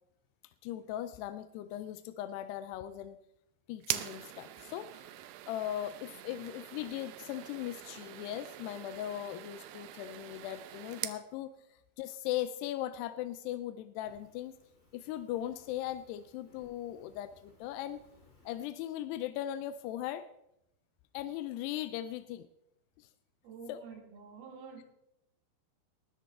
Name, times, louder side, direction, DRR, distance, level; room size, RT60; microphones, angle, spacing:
voice 1, 0.6-3.2 3.7-5.1 5.5-14.6 14.9-18.0 18.5-20.3 21.1-22.5 23.0-23.1 23.7-23.8, left 12 dB, 80° left, 11 dB, 2.6 m, -39 dB
sound 1, 3.8-11.2, right 14 dB, 85° right, 2.9 m, -43 dB
Fire, 14.0-18.6, left 2 dB, 15° left, 5.2 m, -65 dB
voice 2, 23.4-24.8, right 5 dB, 65° right, 3 dB, 3.7 m, -48 dB
19.5 x 13.0 x 3.4 m, 0.80 s
omnidirectional pair, 5.0 m